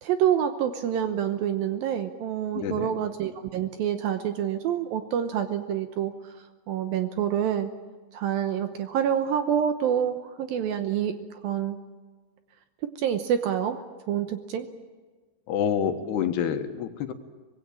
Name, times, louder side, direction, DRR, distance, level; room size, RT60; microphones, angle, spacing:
voice 1, 0.0-6.1 6.7-7.7 8.1-11.1 11.4-11.8 13.0-13.8 14.1-14.7, right 9 dB, 70° right, 8 dB, 2.4 m, -27 dB
voice 2, 2.5-3.0 15.5-17.1, left 8 dB, 70° left, 7 dB, 3.3 m, -27 dB
24.5 x 20.0 x 8.8 m, 1.4 s
omnidirectional pair, 5.0 m